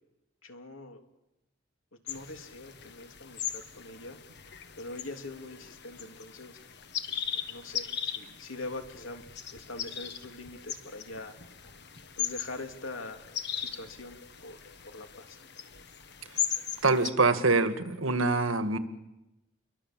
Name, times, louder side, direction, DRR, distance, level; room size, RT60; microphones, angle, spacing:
voice 1, 0.4-1.0 2.0-4.2 4.8-6.6 7.3-9.2 9.5-11.4 12.2-14.6 14.9-15.4, left 2 dB, 75° left, 5 dB, 3.0 m, -43 dB
sound 1, 2.1-17.1, left 9 dB, 55° left, 1.7 m, -39 dB
voice 2, 16.8-18.8, right 3 dB, 85° right, 10 dB, 1.9 m, -25 dB
29.0 x 23.0 x 7.6 m, 0.96 s
head